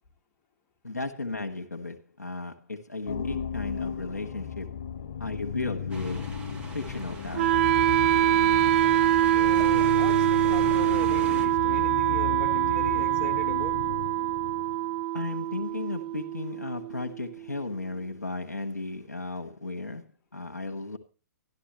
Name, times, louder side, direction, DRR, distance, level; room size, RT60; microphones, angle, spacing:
voice 1, 0.8-4.8 5.2-6.3 6.7-7.7 15.1-21.0, left 3 dB, 80° left, 1.2 m, -35 dB
sound 1, 3.1-14.9, left 8 dB, 60° left, 0.6 m, -36 dB
sound 2, 5.9-11.5, right 3 dB, 10° right, 1.7 m, -42 dB
Wind instrument woodwind instrument, 7.3-17.4, right 14 dB, 45° right, 0.4 m, -24 dB
voice 2, 9.3-13.8, left 4 dB, 30° left, 1.7 m, -39 dB
12.0 x 12.0 x 3.0 m
figure-of-eight pair, 115°, 9 cm